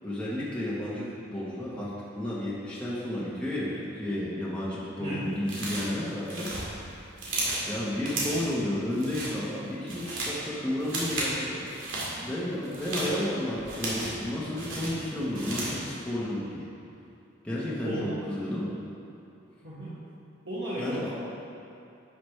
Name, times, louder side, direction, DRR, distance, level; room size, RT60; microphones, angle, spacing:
voice 1, 0.0-6.5 7.7-11.6 12.2-16.6 17.4-18.7 20.8-21.1, left 1 dB, 5° left, -8 dB, 1.1 m, -32 dB
sound 1, 5.5-6.0 6.3-7.7 8.0-8.5 8.9-9.3 9.7-10.4 10.8-11.3 11.7-12.1 12.6-14.2 14.6-15.8, right 2 dB, 85° right, 2.0 m, -33 dB
voice 2, 17.8-18.1 19.6-19.9 20.4-21.1, right 1 dB, 65° right, -11 dB, 1.6 m, -34 dB
11.0 x 6.1 x 3.3 m, 2.7 s
head